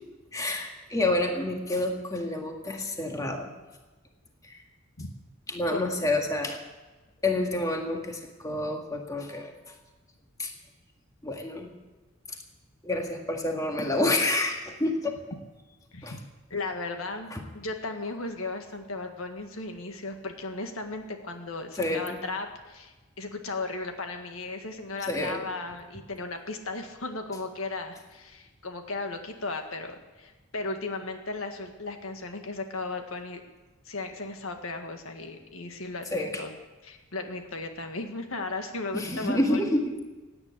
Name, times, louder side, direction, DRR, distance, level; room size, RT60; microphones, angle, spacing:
voice 1, 0.3-3.5 4.4-4.6 5.5-6.6 7.2-9.7 10.4-10.5 11.2-11.7 12.8-15.2 16.0-16.1 17.3-17.4 21.8-22.2 25.1-25.5 36.1-36.4 38.9-39.9, left 2 dB, 15° left, 2 dB, 1.8 m, -28 dB
voice 2, 16.5-33.4 33.8-36.6 36.8-39.6, left 3 dB, 75° left, 5 dB, 1.7 m, -36 dB
17.0 x 9.7 x 8.4 m, 1.2 s
head